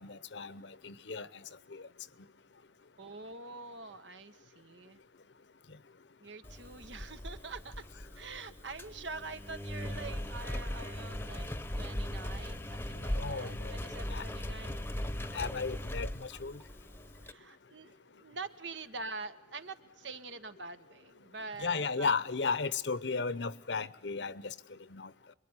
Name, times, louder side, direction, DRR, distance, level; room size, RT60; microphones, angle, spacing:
voice 1, 0.0-1.4 1.7-1.8 13.2-13.8 14.1-14.2 15.3-16.6 21.6-24.5 24.9-25.1, left 4 dB, 70° left, 0.9 m, -35 dB
voice 2, 3.0-5.0 6.2-7.8 8.1-14.9 17.2-22.1, right 3 dB, 85° right, 1.6 m, -45 dB
Engine, 6.4-17.3, left 1 dB, 10° left, 0.9 m, -39 dB
26.5 x 22.0 x 9.8 m
head